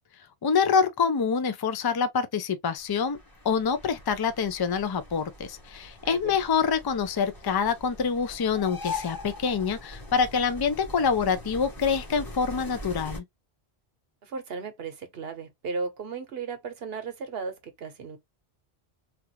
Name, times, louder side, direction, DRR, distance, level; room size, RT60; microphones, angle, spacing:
voice 1, 0.4-3.2 3.4-13.2, left 6 dB, 40° left, 0.3 m, -26 dB
sound 1, 2.8-13.2, left 3 dB, 20° left, 0.9 m, -41 dB
voice 2, 6.0-6.4 14.2-18.2, right 4 dB, 65° right, 1.1 m, -35 dB
3.3 x 2.4 x 2.9 m
omnidirectional pair, 1.1 m